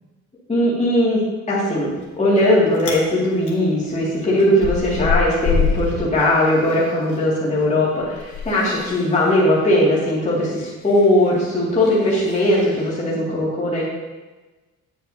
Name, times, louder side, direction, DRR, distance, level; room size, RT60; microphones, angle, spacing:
voice 1, 0.5-1.2 1.5-13.8, left 1 dB, 20° left, -7 dB, 2.2 m, -19 dB
Chewing mastication, 2.0-2.5 2.7-3.0 3.4-7.2 7.5-12.9, left 5 dB, 65° left, 1.8 m, -27 dB
8.6 x 8.1 x 2.7 m, 1.2 s
cardioid pair, 90°, 32 cm